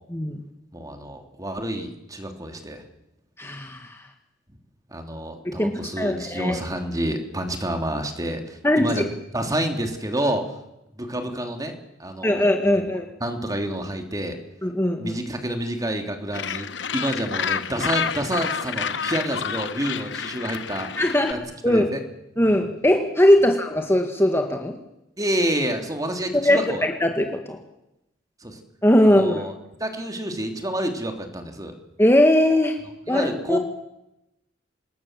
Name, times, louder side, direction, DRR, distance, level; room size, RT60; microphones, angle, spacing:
voice 1, 0.1-0.4 3.4-4.0 5.4-6.6 8.6-9.0 12.2-13.1 14.6-15.2 21.0-21.3 21.6-21.9 22.4-24.7 26.4-27.6 28.8-29.4 32.0-32.8 33.1-33.6, left 1 dB, 15° left, 3 dB, 1.9 m, -20 dB
voice 2, 0.7-2.8 4.9-9.0 9.3-10.5 11.0-12.4 13.2-14.4 15.0-20.9 21.3-21.4 21.6-22.0 25.2-26.8 28.4-28.6 29.0-29.5 29.8-31.7 33.1-33.6, right 1 dB, 20° right, 4 dB, 3.2 m, -28 dB
Gull seagull, 16.3-21.3, left 7 dB, 75° left, 1.0 m, -29 dB
26.5 x 20.5 x 7.6 m, 0.89 s
head